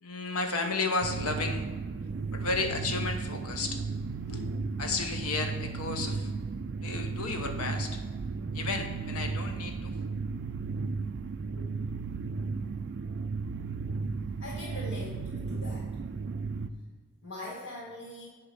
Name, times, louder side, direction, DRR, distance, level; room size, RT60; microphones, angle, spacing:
voice 1, 0.0-1.7 2.1-3.8 4.3-6.3 6.8-8.0 8.5-10.0 11.6-11.7, left 3 dB, 85° left, 5 dB, 1.0 m, -33 dB
sound 1, 1.0-16.7, right 4 dB, 50° right, 0.4 m, -34 dB
voice 2, 14.4-15.9 17.2-18.3, left 1 dB, 60° left, -8 dB, 2.0 m, -42 dB
10.5 x 3.6 x 5.9 m, 1.4 s
head